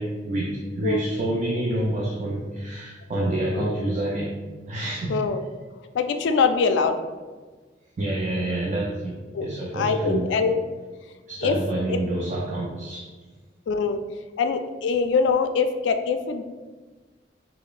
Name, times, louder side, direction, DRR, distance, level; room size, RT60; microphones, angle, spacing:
voice 1, 0.0-4.3 4.7-5.2 8.0-10.3 11.3-13.1, right 1 dB, 40° right, -3 dB, 0.4 m, -27 dB
voice 2, 5.1-5.4 5.9-6.9 9.3-9.5 9.7-10.6 11.4-11.6 11.9-12.0 13.7-14.0 14.4-16.4, left 5 dB, 80° left, 8 dB, 0.3 m, -23 dB
4.7 x 2.0 x 2.4 m, 1.3 s
head